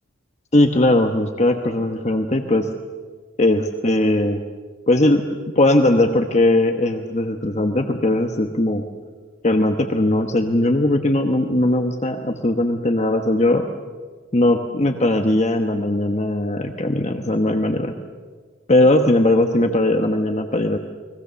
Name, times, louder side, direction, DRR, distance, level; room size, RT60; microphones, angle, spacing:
voice 1, 0.5-2.7 3.4-4.4 4.9-5.2 5.5-8.8 9.4-13.7 14.3-18.0 18.7-20.8, left 1 dB, 30° left, 5 dB, 1.1 m, -19 dB
29.5 x 21.5 x 7.0 m, 1.5 s
head